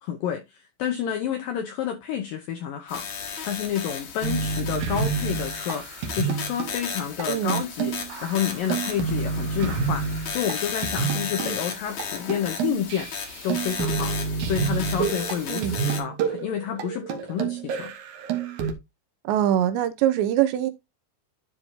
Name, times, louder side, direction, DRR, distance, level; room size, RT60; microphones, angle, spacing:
voice 1, 0.0-5.9 6.1-13.1 13.4-14.1 14.4-17.9, left 9 dB, 80° left, 2.0 m, -29 dB
sound 1, 2.9-16.0, left 6 dB, 55° left, 2.2 m, -34 dB
sound 2, 4.2-6.8 7.2-7.3 7.5-11.6 12.0-12.1 12.3-18.7, right 6 dB, 65° right, 2.0 m, -29 dB
voice 2, 7.3-7.6 11.4-11.6 15.5-15.8 19.2-20.7, right 11 dB, 80° right, 3.1 m, -23 dB
12.0 x 4.5 x 2.8 m
omnidirectional pair, 5.2 m